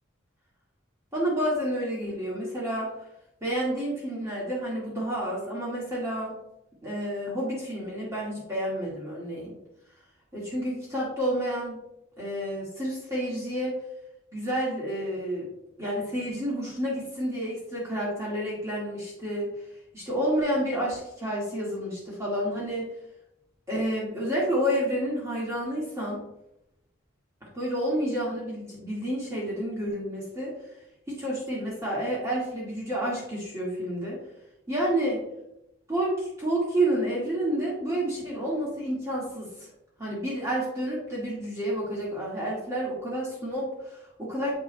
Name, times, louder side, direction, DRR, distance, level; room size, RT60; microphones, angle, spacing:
voice 1, 1.1-2.9 3.4-6.4 6.8-9.5 10.3-11.8 12.2-13.7 14.3-15.5 15.8-19.7 19.9-22.9 23.7-26.3 27.5-30.5 31.1-34.2 34.7-35.3 35.9-39.7 40.0-44.6, right 1 dB, 15° right, -6 dB, 1.7 m, -29 dB
7.7 x 6.0 x 2.2 m, 0.83 s
head